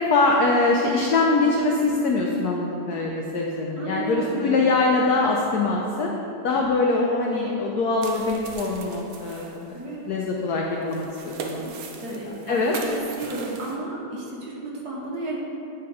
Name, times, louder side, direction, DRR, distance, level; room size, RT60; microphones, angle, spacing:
voice 1, 0.1-6.1 6.4-9.4 10.1-12.2 12.5-12.7, left 3 dB, 85° left, 0 dB, 0.8 m, -23 dB
voice 2, 3.8-4.6 9.7-10.0 12.0-15.4, right 3 dB, 55° right, -4 dB, 1.4 m, -32 dB
sound 1, 8.0-13.8, right 4 dB, 75° right, 1.5 m, -39 dB
8.7 x 3.4 x 4.8 m, 2.8 s
omnidirectional pair, 2.3 m